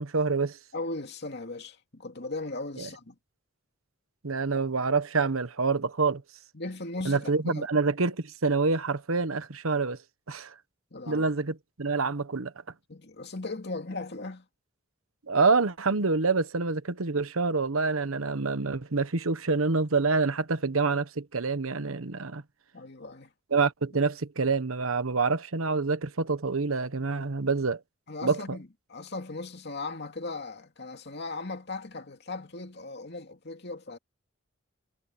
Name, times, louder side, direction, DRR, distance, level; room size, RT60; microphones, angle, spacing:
voice 1, 0.0-0.6 2.8-2.9 4.2-6.2 7.0-10.0 10.3-10.5 11.1-12.5 15.3-22.4 23.5-27.8 28.2-28.6, right 4 dB, 85° right, 1.1 m, -27 dB
voice 2, 0.7-3.2 6.5-7.7 10.9-11.3 12.9-14.5 22.7-23.3 28.1-34.0, left 3 dB, 55° left, 2.5 m, -38 dB
head